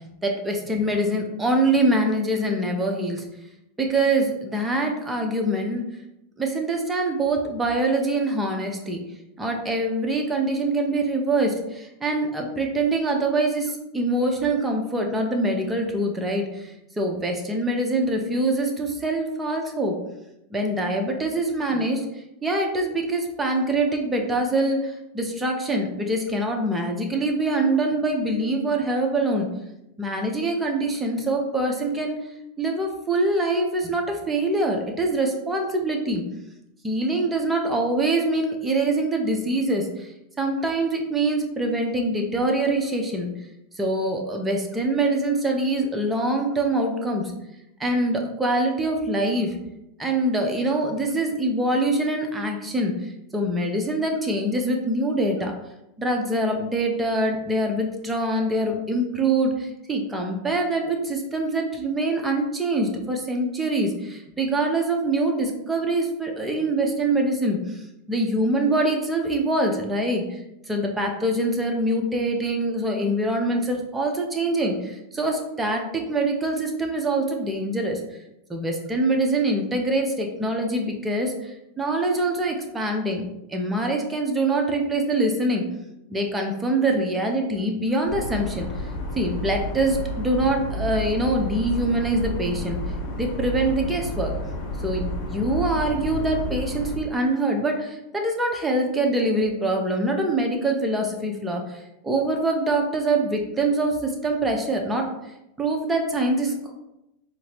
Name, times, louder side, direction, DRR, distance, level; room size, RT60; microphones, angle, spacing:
voice 1, 0.2-3.2 3.8-5.8 6.4-9.0 9.4-20.0 20.5-22.1 22.4-29.5 30.0-32.2 32.6-36.2 36.8-40.1 40.4-43.3 43.7-47.3 47.8-49.6 50.0-55.5 56.0-67.8 68.1-70.4 70.7-78.0 78.5-83.2 83.5-85.6 86.1-88.7 89.2-92.8 93.2-94.3 94.8-105.1 105.6-106.7, right 2 dB, 15° right, 2 dB, 0.7 m, -24 dB
sound 1, 88.1-97.0, left 1 dB, 60° left, 0.9 m, -31 dB
4.4 x 2.0 x 2.8 m, 0.88 s
hypercardioid pair, 100°, 0 cm